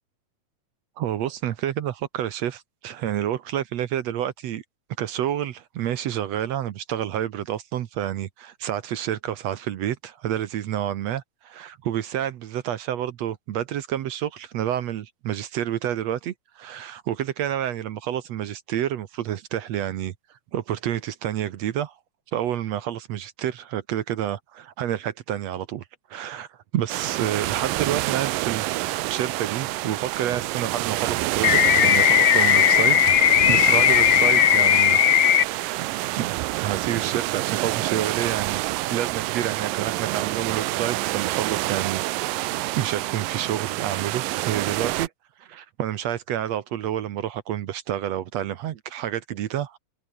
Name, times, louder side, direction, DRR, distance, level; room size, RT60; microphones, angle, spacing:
voice 1, 1.0-4.6 5.0-20.1 20.5-21.9 22.3-25.8 26.1-28.7 29.1-35.4 36.2-36.3 36.6-38.6 38.9-42.3 42.8-45.1 45.4-49.8, right 11 dB, 65° right, 2.0 m, -29 dB
sound 1, 26.9-45.1, right 18 dB, 85° right, 2.4 m, -27 dB
sound 2, 31.4-35.4, left 11 dB, 65° left, 1.3 m, -17 dB
omnidirectional pair, 3.8 m